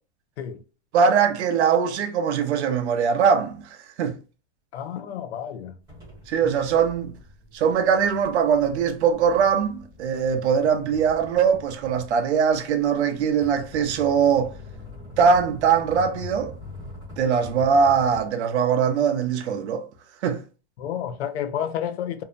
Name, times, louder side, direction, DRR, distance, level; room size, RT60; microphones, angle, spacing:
voice 1, 0.9-3.6 4.0-4.1 6.3-7.1 7.5-14.5 15.2-16.5 17.2-19.8 20.2-20.4, right 6 dB, 80° right, 0.6 m, -21 dB
voice 2, 4.7-5.8 6.4-6.5 20.8-22.2, left 9 dB, 75° left, 0.5 m, -30 dB
sound 1, 5.9-18.3, left 2 dB, 10° right, 0.8 m, -43 dB
2.7 x 2.0 x 2.4 m
supercardioid pair, 180°, 33 cm